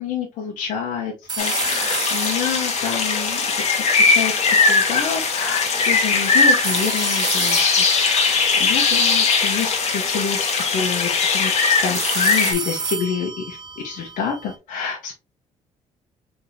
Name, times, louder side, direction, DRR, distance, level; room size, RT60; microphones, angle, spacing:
voice 1, 0.0-3.4 4.1-4.3 4.7-15.1, left 7 dB, 75° left, -1 dB, 1.0 m, -28 dB
sound 1, 1.3-4.3 6.6-9.8 11.9-14.5, right 4 dB, 35° right, 0.6 m, -30 dB
sound 2, 1.4-12.5, left 4 dB, 55° left, 1.3 m, -20 dB
3.9 x 3.6 x 2.8 m, 0.29 s
cardioid pair, 85°, 13 cm